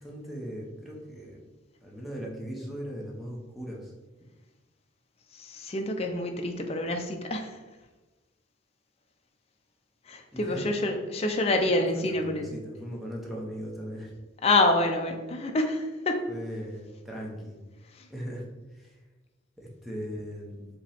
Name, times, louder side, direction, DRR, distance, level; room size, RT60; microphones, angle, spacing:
voice 1, 0.0-1.4 1.8-3.9 10.3-10.7 11.5-14.1 16.3-17.6 18.1-18.5 18.7-19.0 19.6-20.7, equal, ahead, -3 dB, 0.7 m, -39 dB
voice 2, 5.3-7.6 10.1-12.5 14.4-16.3 17.9-18.1, left 2 dB, 30° left, 4 dB, 0.5 m, -27 dB
5.0 x 2.9 x 3.4 m, 1.2 s
head